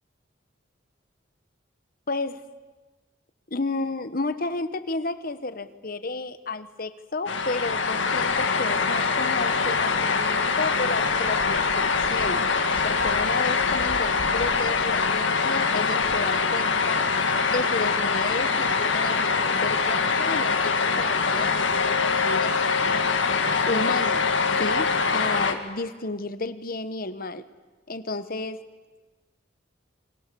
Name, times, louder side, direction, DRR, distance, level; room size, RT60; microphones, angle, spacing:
voice 1, 2.1-2.4 3.5-12.5 12.8-17.1 17.5-22.8 23.7-24.3 24.5-24.9 25.1-27.4 27.9-28.6, left 3 dB, 50° left, 12 dB, 1.2 m, -32 dB
sound 1, 7.3-25.5, left 4 dB, 80° left, 2.0 m, -24 dB
28.5 x 24.0 x 7.0 m, 1.3 s
head